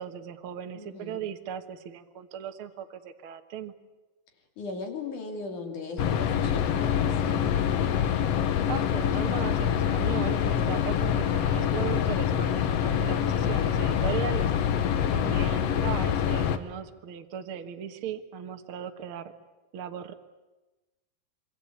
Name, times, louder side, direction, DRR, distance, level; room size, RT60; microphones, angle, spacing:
voice 1, 0.0-3.7 8.7-14.5 15.1-19.3 19.7-20.1, right 9 dB, 65° right, 6 dB, 1.3 m, -37 dB
voice 2, 0.8-1.2 4.6-8.0, left 4 dB, 55° left, 4 dB, 4.1 m, -38 dB
sound 1, 6.0-16.6, left 9 dB, 80° left, 1.4 m, -25 dB
26.5 x 23.5 x 8.6 m, 1.1 s
omnidirectional pair, 4.5 m